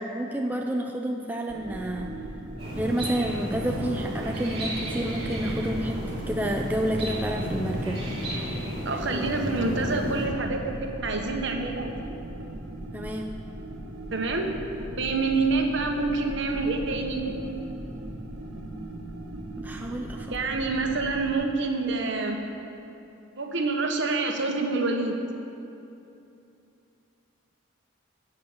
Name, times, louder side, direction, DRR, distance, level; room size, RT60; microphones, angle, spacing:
voice 1, 0.0-2.1 2.7-8.0 9.1-9.3 12.9-13.3 19.6-20.4, right 1 dB, 10° right, 1 dB, 0.4 m, -30 dB
sound 1, 1.5-21.3, right 1 dB, 85° right, 1.3 m, -38 dB
sound 2, 2.6-10.3, equal, 30° right, 2.7 m, -33 dB
voice 2, 8.8-12.1 14.1-14.5 15.0-17.2 20.3-22.4 23.4-25.1, right 3 dB, 55° right, 2 dB, 1.2 m, -27 dB
15.5 x 5.4 x 7.1 m, 2.7 s
head